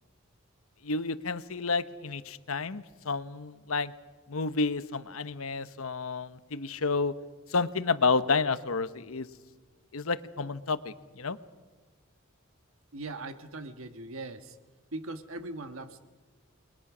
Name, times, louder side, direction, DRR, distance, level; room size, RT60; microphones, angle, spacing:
voice 1, 0.8-3.9 4.3-7.1 7.5-9.3 9.9-11.4, left 4 dB, 80° left, 13 dB, 1.0 m, -30 dB
voice 2, 12.9-14.6 14.9-16.0, right 2 dB, 75° right, 9 dB, 1.5 m, -40 dB
29.5 x 21.5 x 6.2 m, 1.3 s
head